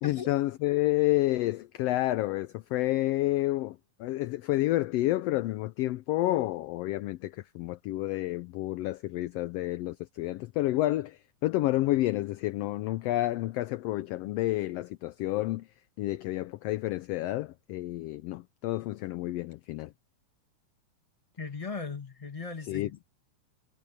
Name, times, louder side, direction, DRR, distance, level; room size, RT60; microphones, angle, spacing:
voice 1, 0.0-15.7 16.0-19.9 22.7-23.1, left 17 dB, 80° left, 1.4 m, -29 dB
voice 2, 21.4-23.1, left 4 dB, 15° left, 1.3 m, -38 dB
omnidirectional pair, 3.4 m